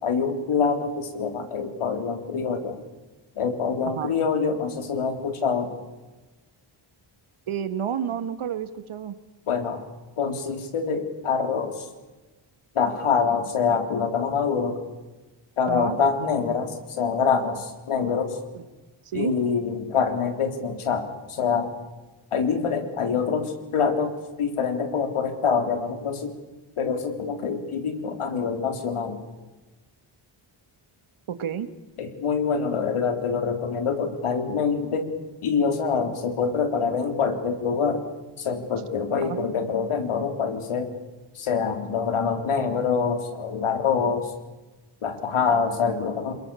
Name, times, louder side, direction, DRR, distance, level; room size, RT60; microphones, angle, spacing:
voice 1, 0.0-2.8 3.4-5.7 9.5-9.8 10.2-11.9 12.8-14.8 15.6-18.4 19.1-21.7 22.3-24.1 24.4-26.3 26.8-29.2 32.0-35.1 35.4-38.0 38.4-40.9 41.4-44.3 45.0-46.3, left 5 dB, 90° left, 6 dB, 3.7 m, -25 dB
voice 2, 3.8-4.2 7.5-9.2 15.7-16.0 18.5-18.6 19.1-19.3 31.3-31.7 39.2-39.4, right 8 dB, 75° right, 11 dB, 1.9 m, -30 dB
28.0 x 21.0 x 7.1 m, 1.2 s
wide cardioid pair, 105°, 49 cm